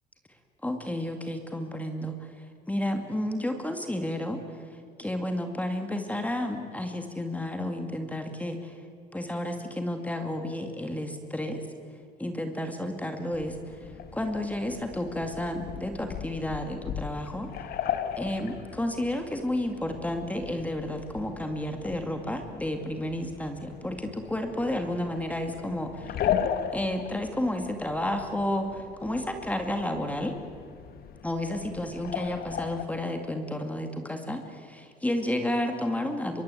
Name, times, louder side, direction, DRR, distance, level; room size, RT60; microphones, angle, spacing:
voice 1, 0.6-4.7 5.0-8.8 9.1-11.6 12.2-17.7 18.2-26.1 26.7-30.3 31.2-36.4, left 1 dB, 10° left, 5 dB, 2.2 m, -31 dB
sound 1, 13.3-32.8, left 9 dB, 65° left, 1.7 m, -37 dB
24.5 x 23.0 x 8.4 m, 2.3 s
cardioid pair, 110°, 17 cm